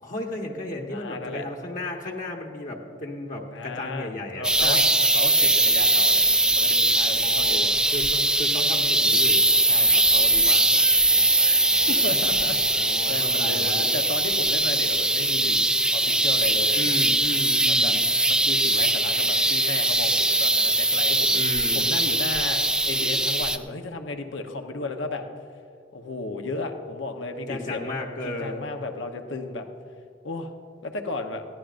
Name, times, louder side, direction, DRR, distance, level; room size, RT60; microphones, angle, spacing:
voice 1, 0.0-4.8 7.2-9.5 11.1-13.9 16.7-18.0 21.3-22.0 27.5-28.6, left 2 dB, 45° left, 0 dB, 1.3 m, -35 dB
voice 2, 0.9-1.4 3.5-4.1 4.3-7.7 9.6-11.1 11.4-11.6 11.9-15.6 15.9-16.9 17.7-17.9 18.2-21.4 21.7-25.2 25.9-27.8 28.2-29.7 30.2-30.5 30.8-31.5, left 3 dB, 75° left, 5 dB, 1.0 m, -34 dB
sound 1, 4.4-23.6, right 2 dB, 5° right, 0.4 m, -21 dB
20.5 x 14.5 x 2.6 m, 2.4 s
head